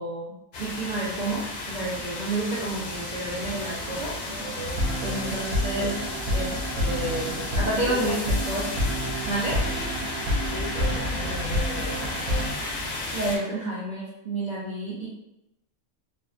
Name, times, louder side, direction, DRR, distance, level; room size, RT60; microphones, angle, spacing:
voice 1, 0.0-4.1 5.0-6.0 6.3-8.7 9.3-9.6 13.1-15.1, right 2 dB, 55° right, -8 dB, 0.5 m, -30 dB
sound 1, 0.5-13.4, left 2 dB, 90° left, 0.3 m, -33 dB
sound 2, 4.3-12.5, equal, 80° right, 1.0 m, -29 dB
voice 2, 5.1-5.4 5.7-6.0 7.9-8.3 10.5-12.5, left 2 dB, 55° left, -6 dB, 0.7 m, -37 dB
2.5 x 2.1 x 2.3 m, 0.91 s
omnidirectional pair, 1.3 m